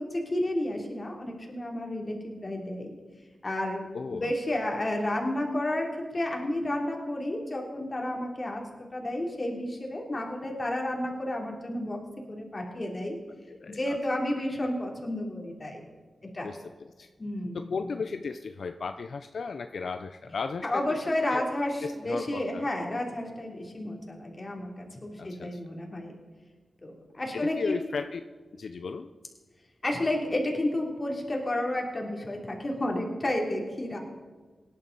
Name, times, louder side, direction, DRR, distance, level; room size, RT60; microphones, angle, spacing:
voice 1, 0.0-2.9 3.4-8.6 8.9-12.0 12.3-13.2 13.7-15.8 16.3-16.5 17.2-17.7 20.6-26.1 26.8-27.7 29.8-34.0, left 1 dB, 35° left, 1 dB, 3.1 m, -31 dB
voice 2, 3.9-4.3 10.1-10.2 13.5-14.0 16.4-17.1 17.5-21.0 21.3-21.4 21.8-22.7 25.2-25.6 27.3-28.2 28.5-29.1, left 4 dB, 75° left, 8 dB, 0.5 m, -35 dB
18.0 x 11.0 x 4.1 m, 1.4 s
cardioid pair, 65°, 0 cm